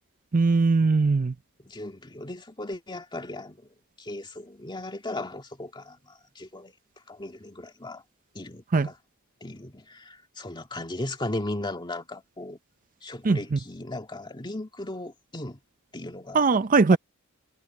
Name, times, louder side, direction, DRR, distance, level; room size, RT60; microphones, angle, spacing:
voice 1, 0.3-1.3 8.7-8.9 13.2-13.6 16.3-17.0, right 4 dB, 40° right, 0.5 m, -20 dB
voice 2, 1.6-6.7 7.1-8.0 8.3-9.0 9.4-12.6 13.0-15.6 15.9-16.4 16.9-17.0, left 2 dB, 20° left, 2.1 m, -37 dB
head